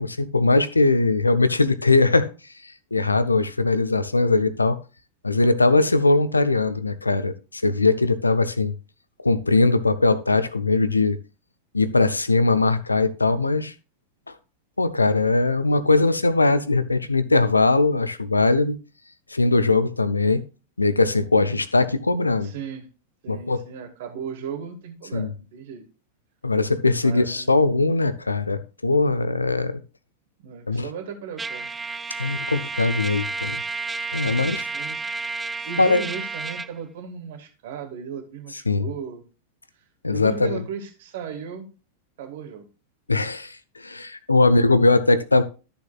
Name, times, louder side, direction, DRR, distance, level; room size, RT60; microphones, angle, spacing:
voice 1, 0.0-2.3 2.6-4.8 5.2-8.7 9.2-11.2 11.7-13.7 14.8-18.8 19.3-20.4 20.8-22.5 23.3-23.6 25.1-25.3 26.4-29.8 30.7-30.9 32.2-33.6 34.1-34.7 35.8-36.1 38.7-38.9 40.0-40.6 43.1-45.4, left 3 dB, 80° left, 0.7 m, -20 dB
voice 2, 22.4-22.8 23.2-25.8 27.0-27.5 30.4-31.7 34.3-35.0 35.6-39.2 40.1-41.7 42.2-42.7, right 7 dB, 55° right, 1.7 m, -36 dB
Trumpet, 31.4-36.7, right 4 dB, 10° right, 0.4 m, -31 dB
13.0 x 6.8 x 2.4 m
figure-of-eight pair, 90°, 0 cm